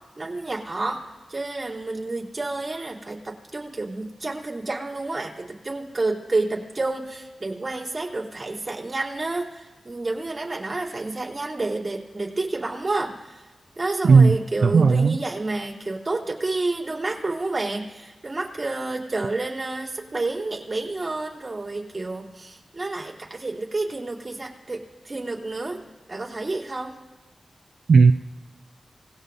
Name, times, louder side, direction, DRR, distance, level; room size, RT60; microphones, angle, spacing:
voice 1, 0.2-13.5 13.8-25.8 26.1-27.0, right 2 dB, 40° right, -3 dB, 3.4 m, -29 dB
voice 2, 14.0-14.4 14.6-15.2 27.9-28.1, right 4 dB, 80° right, 7 dB, 0.4 m, -14 dB
26.5 x 19.0 x 2.7 m, 1.2 s
cardioid pair, 50°, 0 cm